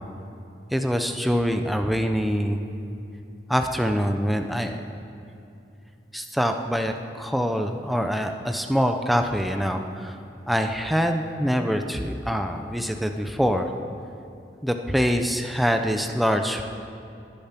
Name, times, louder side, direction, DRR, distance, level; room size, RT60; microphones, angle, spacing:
voice 1, 0.7-2.7 3.5-4.8 6.1-10.1 10.5-13.7 14.6-16.6, equal, ahead, 5 dB, 0.7 m, -24 dB
20.0 x 10.5 x 5.9 m, 2.7 s
head